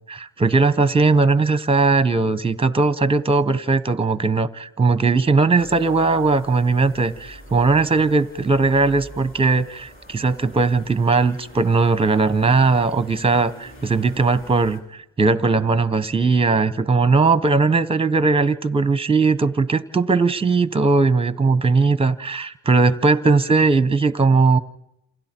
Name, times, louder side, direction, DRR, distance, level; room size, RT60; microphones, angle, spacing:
voice 1, 0.1-24.6, right 3 dB, 15° right, 15 dB, 0.9 m, -19 dB
sound 1, 5.6-14.8, equal, 30° left, 4.4 m, -44 dB
30.0 x 27.5 x 4.5 m, 0.85 s
cardioid pair, 95°, 42 cm